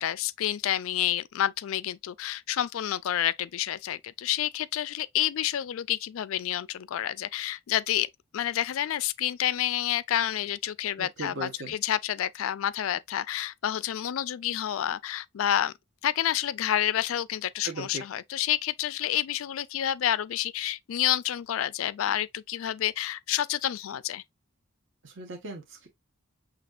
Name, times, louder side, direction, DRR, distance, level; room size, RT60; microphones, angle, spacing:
voice 1, 0.0-15.7 16.0-24.2, left 11 dB, 70° left, 0.3 m, -29 dB
voice 2, 11.0-11.8 17.6-18.0 25.0-25.9, right 2 dB, 60° right, 1.2 m, -38 dB
6.0 x 2.8 x 2.4 m
head